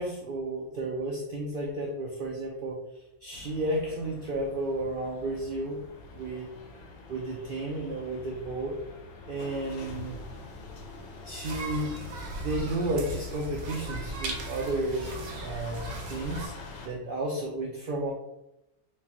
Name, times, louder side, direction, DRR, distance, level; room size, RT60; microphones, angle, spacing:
voice 1, 0.0-2.8 3.2-5.8 6.1-6.5 7.1-8.8 9.3-10.2 11.2-12.0 12.4-16.5 16.8-18.1, right 2 dB, 65° right, -2 dB, 0.5 m, -32 dB
sound 1, 3.3-16.9, left 3 dB, 85° left, 1.1 m, -45 dB
sound 2, 11.4-16.5, right 2 dB, 90° right, 1.1 m, -38 dB
4.4 x 2.2 x 2.8 m, 0.86 s
omnidirectional pair, 1.5 m